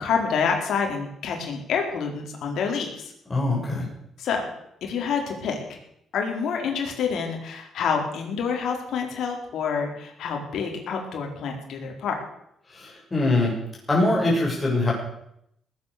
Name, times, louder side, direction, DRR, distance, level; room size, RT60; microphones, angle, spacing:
voice 1, 0.0-3.1 4.2-4.5 4.8-5.8 6.1-12.2, left 6 dB, 70° left, 2 dB, 4.4 m, -27 dB
voice 2, 3.3-3.8 12.7-13.5 13.9-14.9, left 2 dB, 25° left, -4 dB, 7.1 m, -22 dB
20.0 x 9.8 x 6.9 m, 0.76 s
cardioid pair, 90°, 0 cm